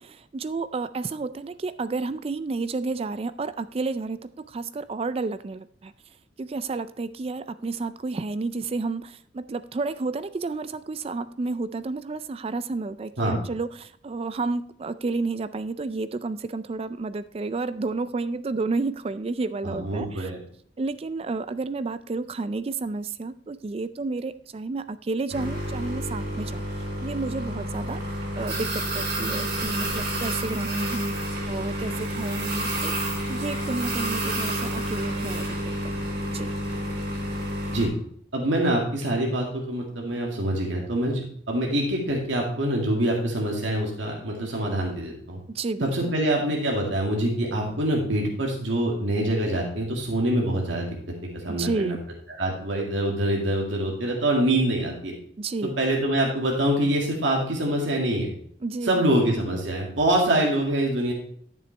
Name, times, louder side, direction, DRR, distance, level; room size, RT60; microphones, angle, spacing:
voice 1, 0.0-5.9 6.4-20.3 20.8-31.1 31.5-33.0 33.3-36.5 45.5-45.9 51.5-52.0 55.4-55.8 58.6-59.0, right 3 dB, 30° right, 14 dB, 0.3 m, -31 dB
voice 2, 19.6-20.4 37.7-37.9 38.3-45.4 45.8-51.0 51.3-52.0 52.4-55.1 55.6-58.3 58.8-61.1, right 1 dB, 90° right, -1 dB, 2.1 m, -25 dB
sound 1, 25.3-37.9, right 1 dB, 60° right, 4.2 m, -29 dB
11.5 x 7.0 x 3.3 m, 0.64 s
head